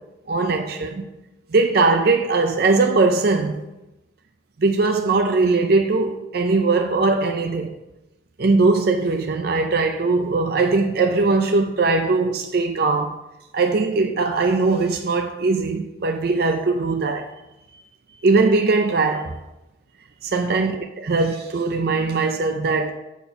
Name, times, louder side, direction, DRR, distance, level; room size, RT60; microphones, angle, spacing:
voice 1, 0.3-1.1 1.5-3.6 4.6-7.7 8.4-13.2 13.5-17.3 18.2-19.4 20.2-22.9, right 3 dB, 55° right, 0.5 m, -20 dB
7.3 x 4.3 x 5.7 m
head